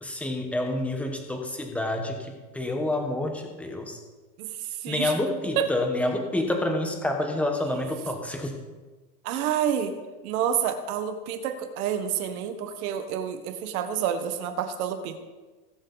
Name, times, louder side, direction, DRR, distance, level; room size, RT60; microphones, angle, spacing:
voice 1, 0.0-4.0 4.9-8.6, left 1 dB, 5° left, 3 dB, 1.1 m, -28 dB
voice 2, 4.4-5.1 5.6-5.7 9.2-9.9 10.2-15.2, right 9 dB, 65° right, 8 dB, 1.6 m, -28 dB
20.0 x 8.0 x 4.1 m, 1.3 s
supercardioid pair, 160°, 47 cm